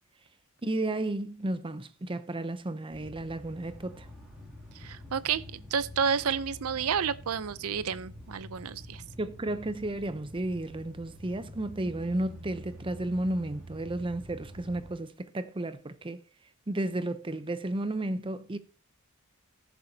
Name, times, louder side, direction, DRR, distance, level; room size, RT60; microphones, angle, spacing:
voice 1, 0.6-4.1 9.2-16.2 16.7-18.6, right 1 dB, 25° right, 0.6 m, -33 dB
sound 1, 2.9-14.9, equal, 5° right, 2.9 m, -47 dB
voice 2, 4.8-9.0, right 7 dB, 80° right, 0.6 m, -30 dB
19.0 x 6.9 x 2.8 m
head